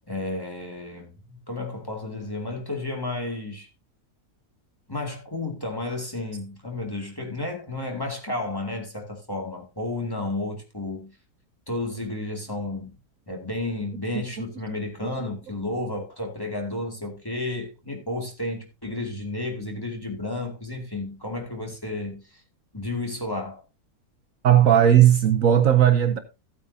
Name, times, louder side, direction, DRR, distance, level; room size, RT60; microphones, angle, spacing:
voice 1, 0.1-3.7 4.9-11.1 11.7-12.9 13.3-22.4 22.7-23.6, left 2 dB, 15° left, 2.3 m, -32 dB
voice 2, 24.4-26.2, right 10 dB, 65° right, 1.2 m, -17 dB
15.0 x 8.8 x 2.7 m
omnidirectional pair, 1.6 m